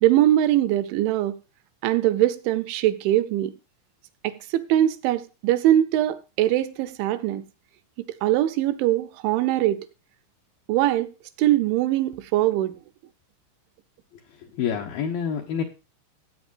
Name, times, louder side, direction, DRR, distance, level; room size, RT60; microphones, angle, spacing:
voice 1, 0.0-1.4 1.8-3.5 4.2-7.4 8.2-9.9 10.7-11.1 11.4-12.8, right 13 dB, 80° right, 2.9 m, -22 dB
voice 2, 14.1-15.6, left 7 dB, 85° left, 2.0 m, -28 dB
17.0 x 8.5 x 2.6 m
omnidirectional pair, 5.7 m